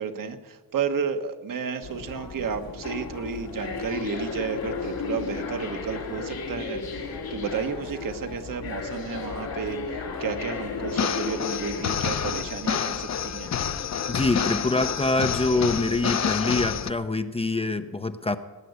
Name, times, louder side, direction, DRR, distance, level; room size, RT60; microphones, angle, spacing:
voice 1, 0.0-13.5, right 6 dB, 65° right, 7 dB, 1.3 m, -32 dB
sound 1, 1.8-16.8, left 5 dB, 90° left, 2.7 m, -35 dB
sound 2, 10.9-16.9, left 8 dB, 50° left, 0.7 m, -28 dB
voice 2, 14.1-18.4, left 2 dB, 15° left, 9 dB, 0.5 m, -25 dB
19.0 x 9.1 x 8.2 m, 1.4 s
wide cardioid pair, 150°, 35 cm